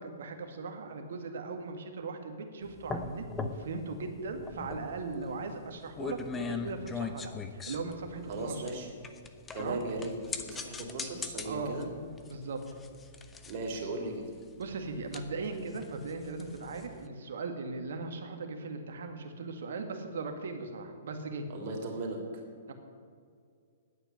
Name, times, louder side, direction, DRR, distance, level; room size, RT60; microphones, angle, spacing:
voice 1, 0.0-8.6 9.6-9.8 11.4-11.8 12.3-12.6 14.6-21.5 22.7-22.8, right 3 dB, 65° right, 5 dB, 1.9 m, -38 dB
sound 1, 2.7-17.1, left 4 dB, 15° left, 1.0 m, -41 dB
voice 2, 8.3-8.9 9.5-11.9 13.4-14.2 21.5-22.2, right 2 dB, 45° right, 1 dB, 3.3 m, -37 dB
10.0 x 8.8 x 9.7 m, 2.2 s
hypercardioid pair, 120°, 0 cm